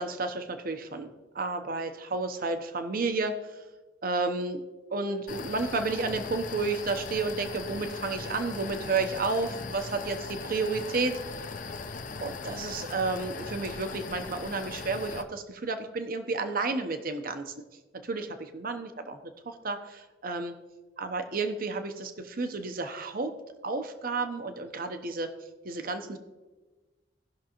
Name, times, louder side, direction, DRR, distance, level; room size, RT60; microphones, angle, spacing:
voice 1, 0.0-3.4 4.0-4.6 4.9-11.4 12.2-17.5 18.0-20.6 21.0-23.3 23.6-25.3 25.6-26.2, right 3 dB, 55° right, 7 dB, 0.8 m, -31 dB
sound 1, 5.3-15.2, left 4 dB, 50° left, 0.6 m, -39 dB
17.5 x 6.0 x 3.0 m, 1.2 s
head